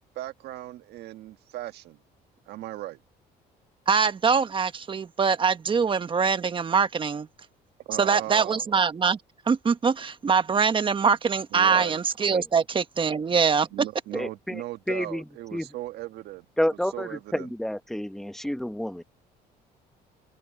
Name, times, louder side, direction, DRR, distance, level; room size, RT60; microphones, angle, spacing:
voice 1, 0.0-2.0 2.5-3.0 7.8-8.7 11.5-12.0 13.7-16.5 16.9-17.5, right 15 dB, 80° right, 1.4 m, -37 dB
voice 2, 3.9-7.3 8.0-9.2 9.5-13.7, right 5 dB, 30° right, 1.2 m, -23 dB
voice 3, 14.1-15.2 15.5-15.7 16.6-19.0, equal, ahead, 1.3 m, -30 dB
cardioid pair, 110°, 17 cm